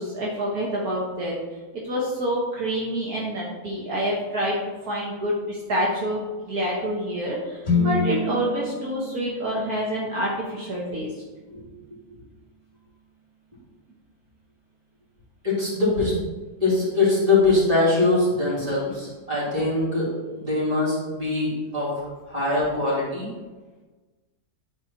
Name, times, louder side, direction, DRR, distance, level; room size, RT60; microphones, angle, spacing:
voice 1, 0.0-1.3 1.7-4.6 4.9-11.1, equal, 65° right, -4 dB, 1.8 m, -27 dB
sound 1, 7.6-11.7, left 3 dB, 45° left, 2.6 m, -29 dB
voice 2, 15.4-16.2 16.6-23.3, left 2 dB, 20° right, -7 dB, 3.1 m, -23 dB
11.0 x 4.4 x 4.5 m, 1.3 s
omnidirectional pair, 1.8 m